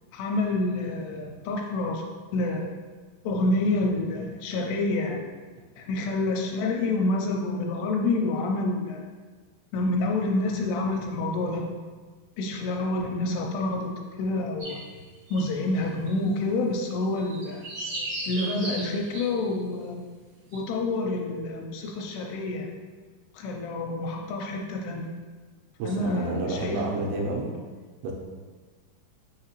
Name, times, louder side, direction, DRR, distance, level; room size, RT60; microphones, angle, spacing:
voice 1, 0.1-2.0 2.3-2.7 3.2-5.2 5.8-9.0 9.7-11.7 12.4-13.9 14.2-14.8 15.3-17.6 18.3-20.0 20.5-22.7 23.3-25.1 25.8-26.8, left 2 dB, 85° left, 1 dB, 2.5 m, -28 dB
sound 1, 14.6-15.5 16.1-16.2 17.2-19.5 20.5-20.6, right 1 dB, 75° right, 1.5 m, -36 dB
voice 2, 25.8-27.5 28.0-28.1, right 2 dB, 90° right, -1 dB, 2.8 m, -29 dB
6.1 x 2.8 x 2.9 m, 1.4 s
omnidirectional pair, 4.7 m